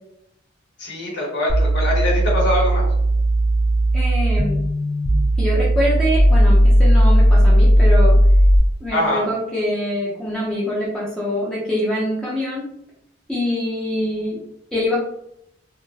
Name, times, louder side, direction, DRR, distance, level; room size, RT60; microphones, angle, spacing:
voice 1, 0.8-2.8 8.9-9.2, left 1 dB, 75° left, -4 dB, 1.4 m, -22 dB
sound 1, 1.5-8.6, equal, 50° left, 1.3 m, -15 dB
voice 2, 3.9-4.6 5.4-8.2 8.8-12.7 13.3-14.4 14.7-15.0, left 1 dB, 5° left, -7 dB, 0.6 m, -24 dB
3.7 x 2.1 x 2.7 m, 0.78 s
head